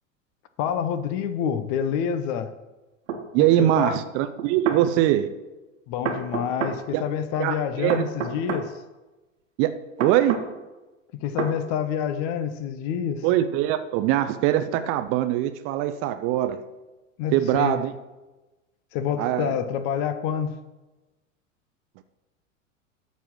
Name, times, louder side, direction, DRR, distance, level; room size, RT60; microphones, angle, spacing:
voice 1, 0.6-2.5 3.4-4.0 5.9-8.7 11.2-13.2 17.2-17.8 18.9-20.5, left 8 dB, 40° left, 12 dB, 0.8 m, -27 dB
sound 1, 3.1-3.2 4.4-4.8 6.0-6.8 7.9-8.7 10.0-10.5 11.4-11.6, right 6 dB, 65° right, 1.4 m, -28 dB
voice 2, 3.3-5.3 6.9-7.0 7.4-8.0 9.6-10.4 13.2-16.6 17.3-17.9 19.2-19.6, right 13 dB, 35° right, 10 dB, 0.6 m, -22 dB
12.5 x 4.1 x 6.2 m, 1.1 s
figure-of-eight pair, 90°, 39 cm